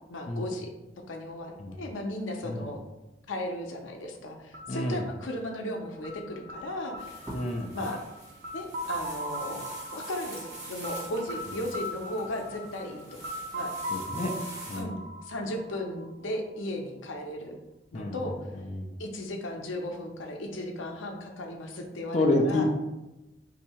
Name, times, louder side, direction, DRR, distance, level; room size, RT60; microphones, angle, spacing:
voice 1, 0.1-0.7 1.1-2.8 3.3-7.2 7.7-8.0 8.5-9.6 9.9-13.2 13.5-13.7 14.8-15.0 15.2-17.5 17.9-18.3 19.0-22.7, left 1 dB, 85° left, 3 dB, 0.6 m, -36 dB
sound 1, 4.5-16.3, equal, 45° right, 0.4 m, -40 dB
voice 2, 4.7-5.0 7.3-7.8 13.9-14.3 14.7-15.0 17.9-18.3 18.6-18.9 22.1-22.7, left 1 dB, 35° left, 0 dB, 0.4 m, -29 dB
sound 2, 7.0-14.8, right 1 dB, 20° right, 1.2 m, -45 dB
2.7 x 2.6 x 4.2 m, 0.99 s
head